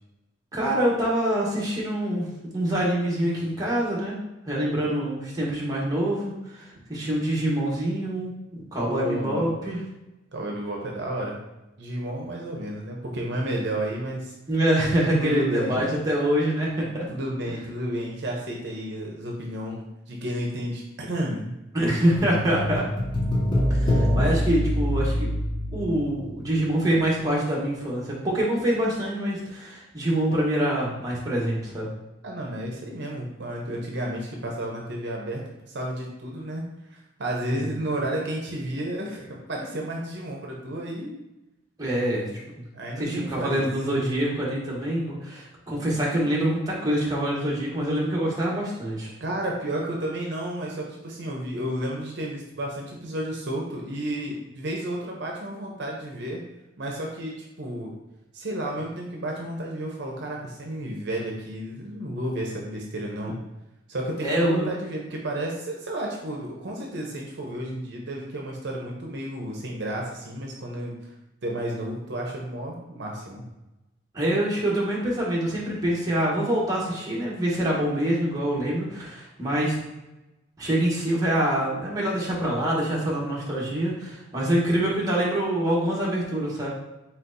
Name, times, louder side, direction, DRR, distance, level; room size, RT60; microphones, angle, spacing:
voice 1, 0.5-2.3 2.5-4.2 4.4-9.8 14.5-17.1 21.7-22.8 23.7-25.3 25.7-31.9 37.5-37.7 41.8-42.3 42.6-42.7 43.0-49.1 64.2-64.7 74.1-79.8 80.6-86.7, right 1 dB, 20° right, -5 dB, 1.1 m, -25 dB
voice 2, 8.8-9.5 10.3-11.4 11.8-14.3 15.2-15.8 17.1-21.6 32.2-35.4 35.7-41.2 42.7-43.7 49.2-56.4 56.8-57.9 58.3-63.4 63.9-71.1 71.4-73.4, right 1 dB, 60° right, -1 dB, 0.7 m, -32 dB
sound 1, 22.2-26.6 26.9-27.0, equal, 25° left, 0.6 m, -25 dB
4.3 x 4.2 x 2.6 m, 0.97 s
head